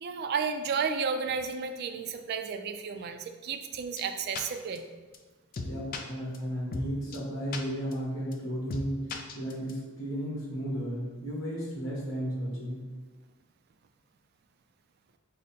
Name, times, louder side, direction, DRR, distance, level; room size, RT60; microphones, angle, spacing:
voice 1, 0.0-4.9, right 5 dB, 50° right, 7 dB, 0.3 m, -32 dB
sound 1, 4.0-4.1 4.4-4.5 4.8-4.9 5.1-5.2 5.5-6.0 6.3-6.4 6.7-6.9 7.1-7.2 7.5-7.6 7.9-8.0 8.3-8.4 8.7-8.8 9.1-9.7, left 4 dB, 45° left, 0.4 m, -36 dB
voice 2, 5.6-9.1 9.3-12.8, equal, 65° left, -5 dB, 1.2 m, -34 dB
5.1 x 2.1 x 4.1 m, 1.3 s
head